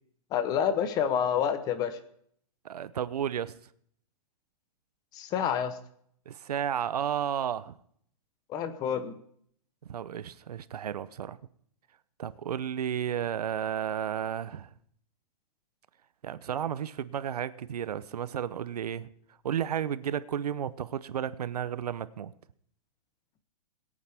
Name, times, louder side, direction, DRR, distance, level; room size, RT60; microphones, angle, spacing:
voice 1, 0.3-2.0 5.1-5.7 8.5-9.2, left 8 dB, 20° left, 11 dB, 0.8 m, -28 dB
voice 2, 2.6-3.5 6.3-7.8 9.9-11.4 12.2-14.7 16.2-19.1 19.4-22.3, right 9 dB, 85° right, 16 dB, 0.8 m, -32 dB
21.5 x 8.8 x 3.5 m, 0.65 s
hypercardioid pair, 160°, 20 cm